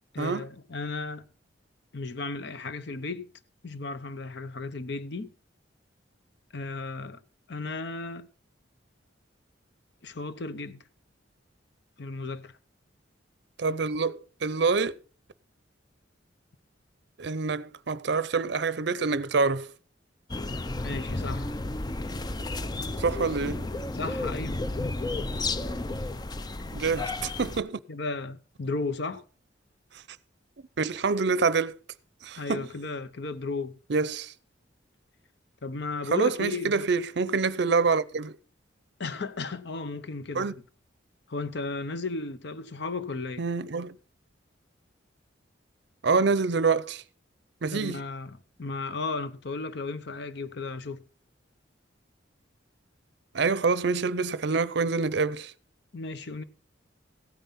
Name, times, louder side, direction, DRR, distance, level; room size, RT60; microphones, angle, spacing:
voice 1, 0.1-1.3 1.9-3.3 3.6-5.3 6.5-7.2 7.5-8.3 10.0-10.8 12.0-12.5 20.8-21.5 23.9-24.6 27.9-29.2 32.4-33.8 35.6-36.9 39.0-40.6 41.3-43.4 47.7-51.0 55.9-56.4, left 3 dB, 60° left, 0.8 m, -34 dB
voice 2, 13.6-14.9 17.2-19.7 23.0-23.7 26.7-27.8 30.8-31.8 32.2-32.7 33.9-34.3 36.1-38.3 40.3-40.5 43.4-43.9 46.0-47.0 47.6-48.0 53.3-55.5, right 4 dB, 60° right, 0.6 m, -26 dB
sound 1, 20.3-27.6, left 2 dB, 20° left, 0.5 m, -32 dB
15.5 x 9.2 x 4.1 m
head